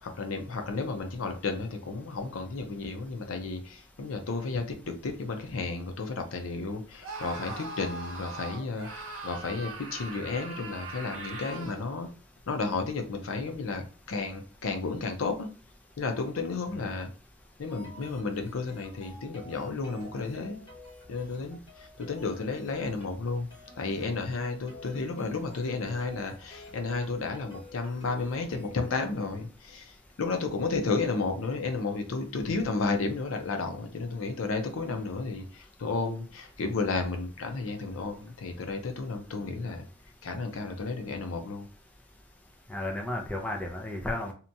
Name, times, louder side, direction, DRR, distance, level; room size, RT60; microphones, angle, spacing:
voice 1, 0.0-12.1 12.5-15.5 16.0-17.1 17.6-20.6 21.1-23.5 23.8-39.8 40.2-41.7, left 3 dB, 80° left, 0.5 m, -32 dB
Screaming, 7.0-11.9, right 3 dB, 70° right, 0.8 m, -40 dB
sound 1, 17.7-29.1, left 1 dB, 20° left, 1.1 m, -51 dB
voice 2, 42.7-44.3, left 1 dB, 5° left, 0.3 m, -33 dB
2.8 x 2.2 x 2.6 m
head